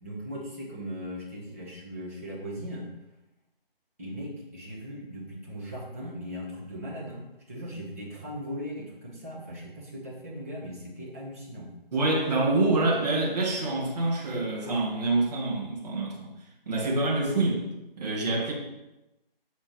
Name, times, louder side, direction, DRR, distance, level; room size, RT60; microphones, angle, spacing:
voice 1, 0.0-2.9 4.0-11.7, equal, 15° right, -5 dB, 1.0 m, -38 dB
voice 2, 11.9-16.3 16.7-17.6 18.0-18.5, right 2 dB, 40° right, -4 dB, 1.7 m, -26 dB
7.0 x 4.3 x 4.4 m, 0.96 s
figure-of-eight pair, 165°, 30 cm